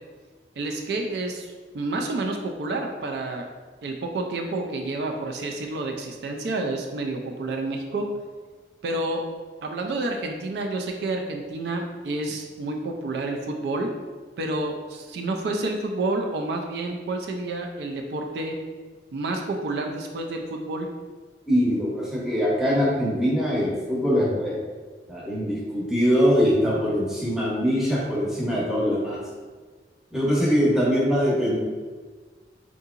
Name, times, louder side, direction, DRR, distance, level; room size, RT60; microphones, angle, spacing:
voice 1, 0.6-3.4 3.8-8.0 8.8-9.2 9.6-13.9 14.4-18.6 19.1-20.9, right 2 dB, 70° right, 2 dB, 0.3 m, -29 dB
voice 2, 21.5-24.5 25.1-29.2 30.1-31.6, equal, 5° right, -7 dB, 0.7 m, -22 dB
3.7 x 2.8 x 2.4 m, 1.4 s
head